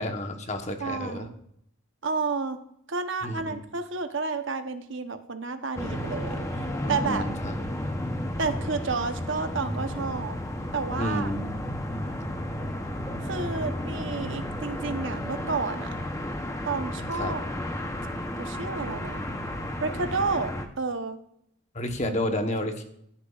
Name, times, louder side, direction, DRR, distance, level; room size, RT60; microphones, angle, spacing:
voice 1, 0.0-1.3 3.2-3.6 6.8-7.7 11.0-11.6 17.1-17.3 21.7-22.8, left 1 dB, 30° left, 5 dB, 1.1 m, -30 dB
voice 2, 0.8-1.4 2.0-2.6 2.9-7.2 8.4-10.4 10.7-11.3 13.2-16.0 16.6-17.4 18.4-19.2 19.8-21.2, right 4 dB, 60° right, 8 dB, 0.9 m, -31 dB
sound 1, 5.8-20.7, left 1 dB, 15° left, 0.8 m, -33 dB
15.5 x 10.5 x 2.4 m, 0.71 s
head